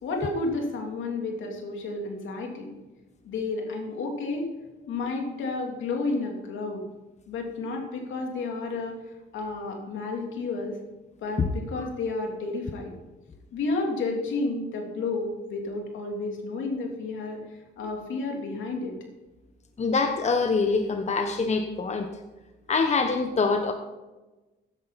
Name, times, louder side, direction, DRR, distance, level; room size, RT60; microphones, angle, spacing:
voice 1, 0.0-2.8 3.2-4.5 4.9-6.8 7.3-9.0 9.3-10.8 11.2-12.9 13.5-17.4 17.8-18.9, left 3 dB, 75° left, 1 dB, 3.1 m, -31 dB
voice 2, 19.8-22.2 22.7-23.7, left 4 dB, 35° left, 6 dB, 1.1 m, -25 dB
14.5 x 10.5 x 4.2 m, 1.1 s
cardioid pair, 90°, 20 cm